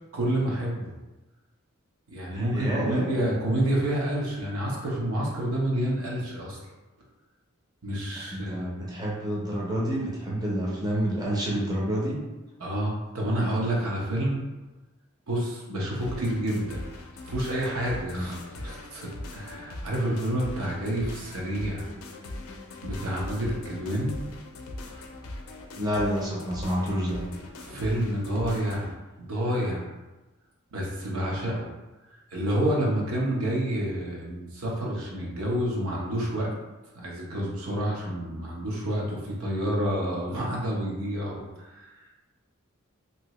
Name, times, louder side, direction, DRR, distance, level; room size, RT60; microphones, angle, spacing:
voice 1, 0.1-0.9 2.1-6.6 7.8-8.6 12.6-14.4 15.3-16.8 17.2-21.9 22.8-24.2 27.6-28.9 29.2-29.9 30.7-31.7 32.3-36.5 36.9-42.1, right 1 dB, 75° right, -3 dB, 0.8 m, -29 dB
voice 2, 2.3-3.0 8.3-12.2 16.0-16.3 18.1-18.3 25.8-27.2, equal, 20° right, -5 dB, 0.6 m, -29 dB
sound 1, 16.0-28.9, left 2 dB, 70° left, 0.4 m, -40 dB
2.7 x 2.7 x 3.0 m, 1.1 s
head